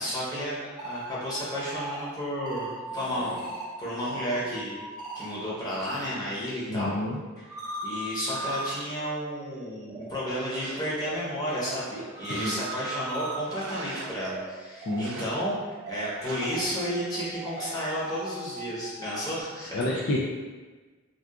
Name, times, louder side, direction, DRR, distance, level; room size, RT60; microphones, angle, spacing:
voice 1, 0.0-2.7 2.9-3.4 3.8-4.8 5.2-7.0 7.4-15.6 15.9-19.8, equal, 15° left, -8 dB, 0.8 m, -32 dB
sound 1, 0.6-5.8 6.1-19.4, right 2 dB, 15° right, 0.6 m, -40 dB
sound 2, 2.8-3.7 4.0-4.5 5.7-6.3, equal, 75° left, 1.1 m, -46 dB
voice 2, 6.7-7.2 12.3-12.5 14.9-15.3 19.7-20.2, left 1 dB, 55° left, -4 dB, 0.3 m, -29 dB
sound 3, 10.2-11.1 11.6-13.0 13.4-14.3 14.9-15.6 16.2-16.8, right 3 dB, 60° right, 0.3 m, -42 dB
3.7 x 2.3 x 2.3 m, 1.3 s
head